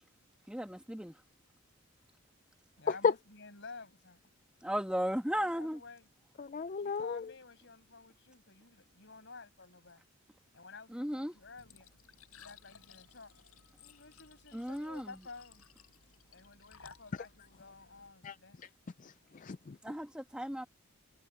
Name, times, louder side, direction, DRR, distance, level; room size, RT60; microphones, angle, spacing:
voice 1, 0.5-1.2 4.6-5.8 10.9-11.3 14.5-15.2 19.8-20.7, equal, 5° right, 1.3 m, -35 dB
voice 2, 2.8-4.2 5.3-6.1 6.8-10.0 10.5-11.9 12.4-13.3 13.8-15.6 16.3-18.6, left 4 dB, 55° left, 6.0 m, -52 dB
voice 3, 6.4-7.3 18.2-18.4 19.0-19.8, left 5 dB, 35° left, 0.4 m, -33 dB
Glass / Trickle dribble / Fill (with liquid), 11.3-18.1, left 6 dB, 85° left, 7.9 m, -59 dB
head